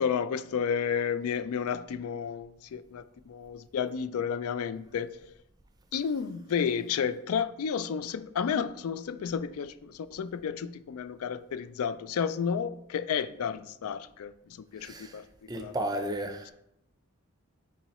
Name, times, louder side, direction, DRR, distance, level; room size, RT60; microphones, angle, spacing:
voice 1, 0.0-5.2 5.9-14.3 14.7-15.2 15.5-15.8, left 7 dB, 80° left, 0.4 m, -31 dB
voice 2, 14.8-15.2 15.5-16.5, right 1 dB, 15° right, 0.5 m, -33 dB
7.0 x 4.7 x 3.0 m
head